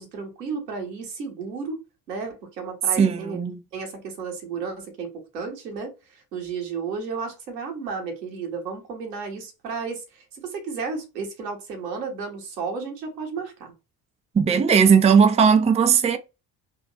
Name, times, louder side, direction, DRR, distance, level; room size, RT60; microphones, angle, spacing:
voice 1, 0.0-1.8 2.1-3.4 3.7-13.7, right 5 dB, 85° right, 1.3 m, -33 dB
voice 2, 3.0-3.6 14.3-16.2, right 6 dB, 15° right, 0.5 m, -17 dB
3.5 x 2.5 x 3.1 m
hypercardioid pair, 60°, 48 cm